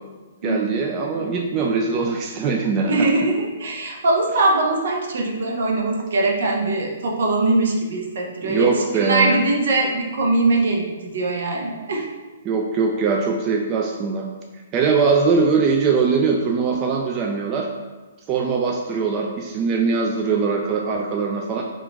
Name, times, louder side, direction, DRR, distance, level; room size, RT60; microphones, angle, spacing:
voice 1, 0.4-3.1 8.4-9.4 12.5-14.3 14.7-17.7 18.3-21.6, right 5 dB, 30° right, 1 dB, 0.3 m, -21 dB
voice 2, 2.9-12.1, right 2 dB, 65° right, 0 dB, 0.7 m, -21 dB
3.7 x 2.4 x 3.4 m, 1.3 s
hypercardioid pair, 135°, 0 cm